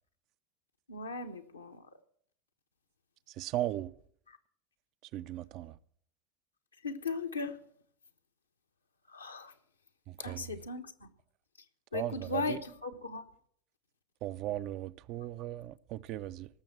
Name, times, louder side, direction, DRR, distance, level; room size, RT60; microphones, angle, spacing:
voice 1, 0.9-1.9 4.3-4.4 6.8-7.6 9.1-9.5 10.2-11.1 11.9-13.2, left 3 dB, 80° left, 1.2 m, -37 dB
voice 2, 3.4-3.9 5.1-5.8 10.1-10.5 11.9-12.6 14.2-16.5, right 14 dB, 45° right, 0.5 m, -37 dB
18.5 x 7.0 x 7.4 m
figure-of-eight pair, 80°, 0 cm